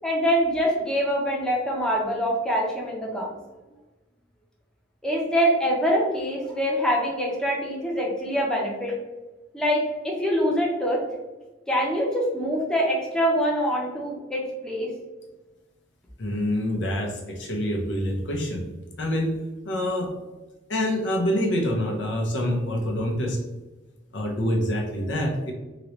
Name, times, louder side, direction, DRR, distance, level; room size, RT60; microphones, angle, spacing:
voice 1, 0.0-3.3 5.0-8.9 9.5-11.0 11.7-14.9, equal, 5° left, -3 dB, 0.7 m, -24 dB
voice 2, 16.2-18.6 19.0-19.4 19.6-20.1 20.7-23.4 24.1-25.5, equal, 75° left, 1 dB, 0.7 m, -26 dB
2.9 x 2.9 x 3.0 m, 1.1 s
head